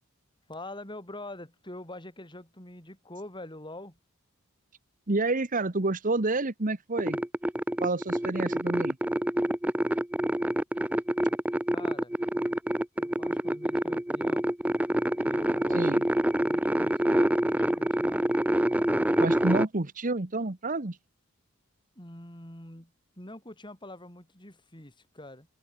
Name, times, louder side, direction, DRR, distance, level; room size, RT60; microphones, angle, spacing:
voice 1, 0.5-4.0 11.7-12.1 13.0-14.5 15.2-16.0 16.4-18.3 22.0-25.5, left 1 dB, 20° left, 7.3 m, -45 dB
voice 2, 5.1-7.2 7.8-9.0 15.7-16.0 19.2-21.0, right 2 dB, 40° right, 1.2 m, -29 dB
sound 1, 7.0-19.7, right 1 dB, 5° right, 0.6 m, -26 dB
head